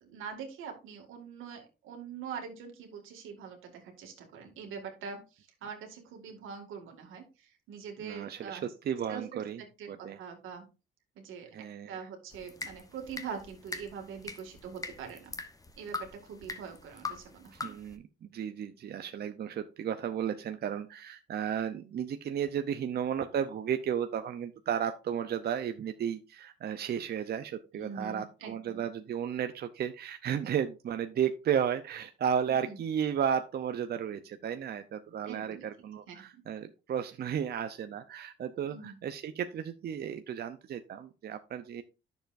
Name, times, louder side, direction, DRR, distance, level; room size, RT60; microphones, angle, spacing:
voice 1, 0.0-7.2 7.7-8.6 9.1-9.4 9.8-10.6 11.2-11.5 11.9-15.3 15.8-17.7 27.7-28.9 32.5-32.8 35.3-35.7 36.1-36.2 38.6-38.9, right 6 dB, 85° right, 3 dB, 2.0 m, -43 dB
voice 2, 8.0-9.6 9.9-10.2 11.5-12.0 17.5-41.8, right 8 dB, 55° right, 9 dB, 0.6 m, -34 dB
sound 1, 12.3-18.0, left 3 dB, 15° left, 0.9 m, -43 dB
10.0 x 6.9 x 2.5 m, 0.31 s
cardioid pair, 90°, 20 cm